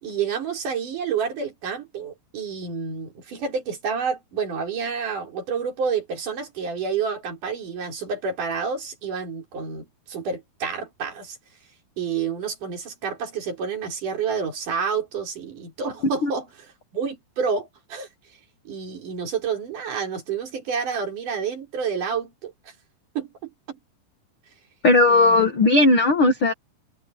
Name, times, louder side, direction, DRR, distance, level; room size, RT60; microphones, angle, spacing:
voice 1, 0.0-11.4 12.0-18.1 18.7-22.5 23.2-23.8 25.1-25.4, right 6 dB, 50° right, 5.7 m, -29 dB
voice 2, 24.8-26.5, left 2 dB, 60° left, 1.4 m, -17 dB
omnidirectional pair, 4.8 m